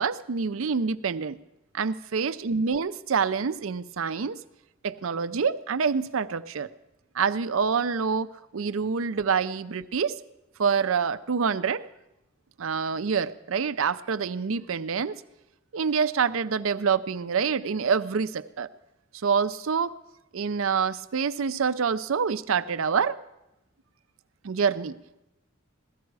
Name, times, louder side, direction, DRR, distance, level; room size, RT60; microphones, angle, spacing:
voice 1, 0.0-1.4 1.7-4.4 4.8-6.7 7.1-8.3 8.5-10.1 10.6-11.8 12.6-15.2 15.7-18.7 19.2-19.9 20.3-23.2 24.4-25.0, right 6 dB, 75° right, 13 dB, 0.5 m, -26 dB
16.5 x 13.5 x 4.7 m, 0.90 s
head